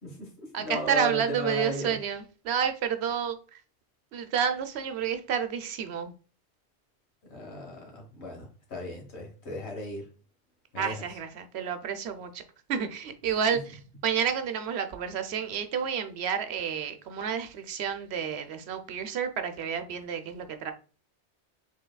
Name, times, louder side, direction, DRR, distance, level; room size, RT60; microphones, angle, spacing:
voice 1, 0.0-2.0 7.3-10.1 10.7-11.0, left 2 dB, 70° left, 1.6 m, -36 dB
voice 2, 0.5-3.6 4.1-6.1 10.8-12.4 12.7-20.7, right 7 dB, 75° right, 0.9 m, -30 dB
5.5 x 3.4 x 2.2 m
omnidirectional pair, 1.1 m